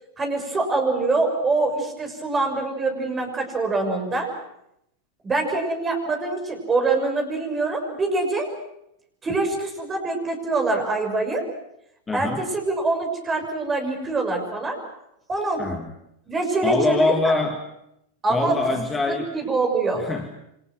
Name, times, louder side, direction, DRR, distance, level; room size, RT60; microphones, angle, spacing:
voice 1, 0.2-4.3 5.2-8.5 9.2-11.4 12.1-14.8 15.3-15.6 16.3-17.3 18.2-18.8 19.1-20.0, right 3 dB, 20° right, 4 dB, 6.6 m, -24 dB
voice 2, 12.1-12.5 15.6-15.9 16.6-17.6 18.3-19.3 20.0-20.3, left 3 dB, 15° left, 4 dB, 2.2 m, -24 dB
28.5 x 25.5 x 6.3 m, 0.79 s
figure-of-eight pair, 90°, 0 cm